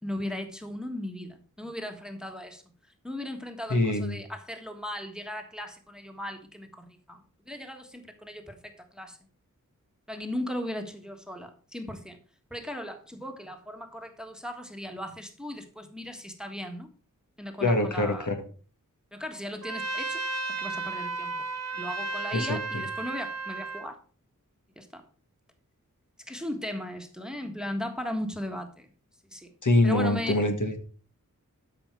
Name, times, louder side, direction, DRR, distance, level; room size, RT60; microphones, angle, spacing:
voice 1, 0.0-2.6 3.0-9.2 10.1-12.2 12.5-16.9 17.4-18.3 19.1-20.2 20.6-21.4 21.7-24.0 24.7-25.0 26.3-28.9 29.3-29.5 29.8-30.4, left 1 dB, ahead, 5 dB, 1.5 m, -37 dB
voice 2, 3.7-4.2 17.6-18.4 22.3-22.8 29.6-30.8, left 2 dB, 70° left, 5 dB, 1.9 m, -24 dB
Trumpet, 19.6-23.9, right 3 dB, 55° right, 1.2 m, -33 dB
13.0 x 5.6 x 4.6 m, 0.40 s
wide cardioid pair, 65°, 32 cm